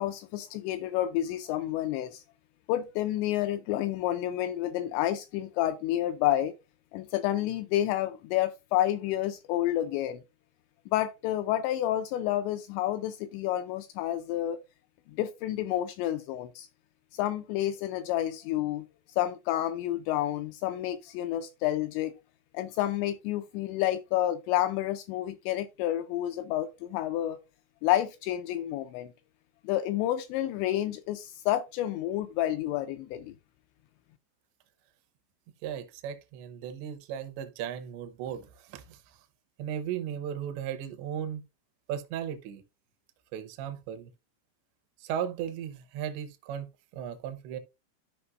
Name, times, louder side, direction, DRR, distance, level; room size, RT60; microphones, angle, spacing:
voice 1, 0.0-2.2 2.7-6.5 6.9-10.2 10.9-14.6 15.2-16.7 17.1-18.8 19.2-22.1 22.5-27.4 27.8-29.1 29.6-33.3, left 13 dB, 85° left, 2.5 m, -29 dB
voice 2, 35.6-39.0 39.6-41.4 41.9-42.6 43.3-44.1 45.0-46.7 46.9-47.6, right 9 dB, 75° right, 3.0 m, -36 dB
14.0 x 5.2 x 2.5 m
omnidirectional pair, 5.6 m